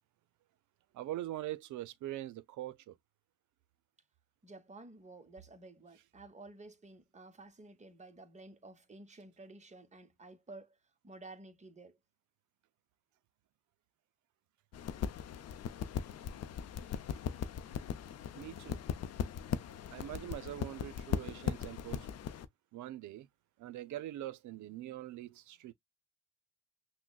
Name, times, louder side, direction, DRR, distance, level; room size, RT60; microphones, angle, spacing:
voice 1, 0.9-2.9 18.3-18.8 19.9-22.1 22.7-23.3 23.6-25.7, right 14 dB, 75° right, 0.6 m, -43 dB
voice 2, 4.4-10.8 11.0-12.0 17.2-17.3, right 2 dB, 25° right, 1.0 m, -53 dB
sound 1, 14.7-22.5, left 9 dB, 55° left, 0.6 m, -39 dB
6.0 x 2.1 x 2.3 m
cardioid pair, 90°, 30 cm